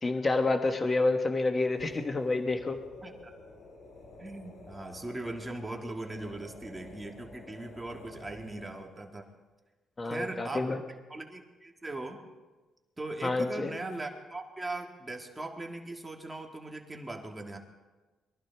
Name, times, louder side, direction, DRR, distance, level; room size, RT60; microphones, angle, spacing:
voice 1, 0.0-2.8 10.0-10.8 13.2-13.7, left 3 dB, 30° left, 6 dB, 1.3 m, -28 dB
sound 1, 1.6-9.0, left 2 dB, 80° left, 4.3 m, -51 dB
voice 2, 3.0-3.3 4.2-9.3 10.0-10.7 11.1-12.2 13.0-17.6, right 2 dB, 15° right, 2 dB, 1.8 m, -39 dB
22.5 x 14.0 x 3.5 m, 1.2 s
cardioid pair, 90°, 0 cm